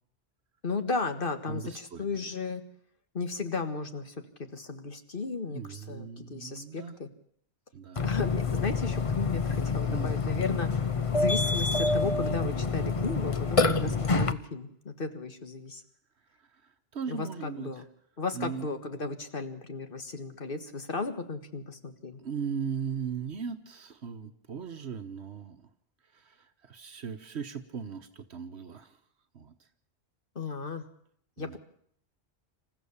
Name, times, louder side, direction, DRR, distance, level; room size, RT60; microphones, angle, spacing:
voice 1, 0.6-2.6 3.1-4.1 4.5-7.1 8.0-10.7 11.1-15.8 17.1-17.8 18.2-22.2 30.4-30.8 31.4-31.6, left 4 dB, 55° left, 8 dB, 1.9 m, -35 dB
voice 2, 1.5-2.3 5.5-7.0 7.7-8.0 9.9-10.1 13.6-13.9 16.4-17.8 18.3-18.7 22.2-25.6 26.1-29.0 29.3-29.5 31.4-31.6, right 7 dB, 75° right, 8 dB, 1.4 m, -38 dB
Burping eructation, 8.0-14.3, left 4 dB, 35° left, 0.9 m, -27 dB
27.5 x 14.5 x 7.1 m, 0.67 s
omnidirectional pair, 1.1 m